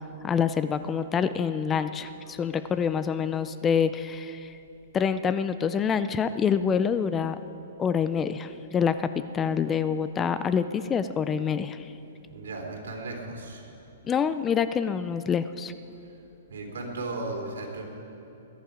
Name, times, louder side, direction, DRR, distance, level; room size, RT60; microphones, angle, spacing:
voice 1, 0.0-4.5 4.9-7.4 7.8-11.8 14.0-15.7, left 7 dB, 15° left, 12 dB, 0.4 m, -26 dB
voice 2, 12.2-13.6 16.5-17.8, right 2 dB, 85° right, 1 dB, 3.1 m, -35 dB
21.5 x 10.5 x 5.0 m, 2.9 s
hypercardioid pair, 150°, 0 cm